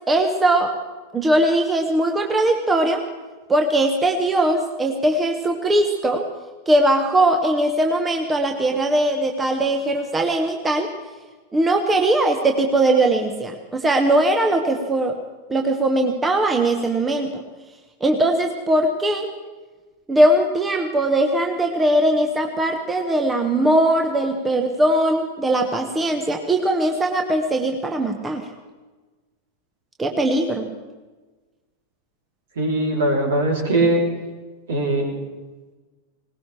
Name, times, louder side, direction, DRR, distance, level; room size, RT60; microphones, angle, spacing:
voice 1, 0.1-0.7 1.1-3.0 3.5-6.3 6.7-10.9 11.5-15.2 15.5-17.4 18.0-19.3 20.1-28.4 30.0-30.7, right 1 dB, 15° right, 4 dB, 1.3 m, -20 dB
voice 2, 32.6-34.0 34.7-35.0, right 2 dB, 60° right, 0 dB, 3.4 m, -20 dB
20.5 x 18.5 x 3.4 m, 1.3 s
figure-of-eight pair, 90°, 0 cm